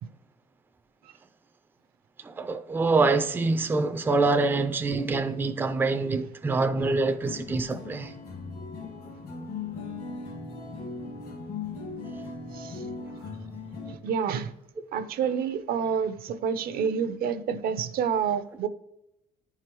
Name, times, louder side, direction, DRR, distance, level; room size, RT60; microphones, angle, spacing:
voice 1, 2.2-8.1, right 3 dB, 10° right, 0.4 m, -25 dB
sound 1, 7.2-13.9, left 4 dB, 60° left, 1.5 m, -38 dB
voice 2, 12.5-12.8 13.9-14.5 14.9-18.7, right 7 dB, 65° right, 0.5 m, -28 dB
9.8 x 4.8 x 3.0 m
cardioid pair, 110°, 17 cm